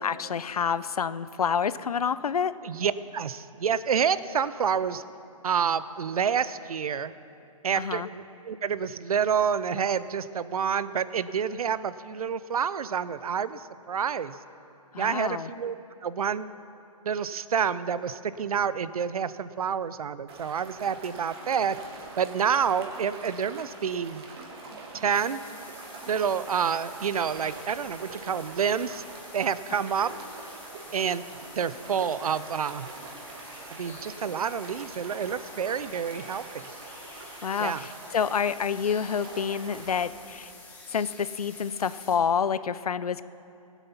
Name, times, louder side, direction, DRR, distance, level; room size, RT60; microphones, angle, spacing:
voice 1, 0.0-2.5 7.8-8.1 14.9-15.5 37.4-40.5 40.9-43.3, left 7 dB, 90° left, 16 dB, 0.5 m, -28 dB
voice 2, 2.6-5.0 5.4-7.1 7.6-14.4 15.0-15.8 16.0-16.5 17.0-21.8 22.2-24.2 24.9-25.4 26.1-29.0 29.3-30.1 30.9-32.9 33.7-36.7 37.6-37.9, right 7 dB, 80° right, 16 dB, 0.6 m, -28 dB
sound 1, 20.3-40.1, right 3 dB, 45° right, 2.1 m, -44 dB
sound 2, 25.1-42.2, left 3 dB, 10° left, 1.3 m, -49 dB
18.0 x 8.2 x 5.7 m, 2.7 s
hypercardioid pair, 140°, 19 cm